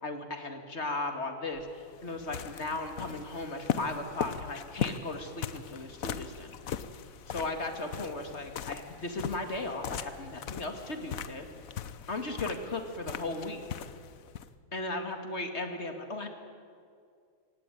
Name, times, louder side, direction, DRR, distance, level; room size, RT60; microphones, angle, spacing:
voice 1, 0.0-6.6 7.3-11.5 12.1-13.6 14.7-16.3, left 2 dB, 30° left, 6 dB, 2.3 m, -36 dB
sound 1, 1.5-14.5, left 8 dB, 55° left, 1.0 m, -39 dB
24.5 x 18.0 x 9.3 m, 2.3 s
omnidirectional pair, 2.2 m